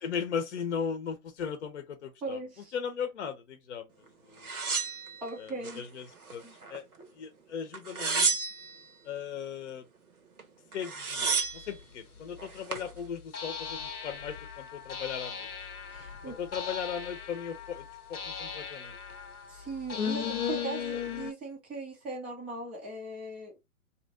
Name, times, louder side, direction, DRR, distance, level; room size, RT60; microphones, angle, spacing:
voice 1, 0.0-2.4 2.7-3.9 4.3-4.5 5.4-6.9 7.2-8.4 9.0-9.9 10.7-15.5 16.2-19.0, left 7 dB, 50° left, 0.7 m, -37 dB
voice 2, 2.2-2.7 5.2-5.8 6.4-6.6 15.9-16.4 19.5-23.5, right 3 dB, 5° right, 0.4 m, -39 dB
sound 1, 4.4-5.8 6.2-7.0 7.7-8.8 10.4-10.5 10.7-11.7 12.4-12.9, right 4 dB, 85° right, 1.1 m, -31 dB
sound 2, 11.8-11.9 13.3-21.3, left 7 dB, 85° left, 0.8 m, -37 dB
3.0 x 2.8 x 3.5 m
figure-of-eight pair, 120°, 43 cm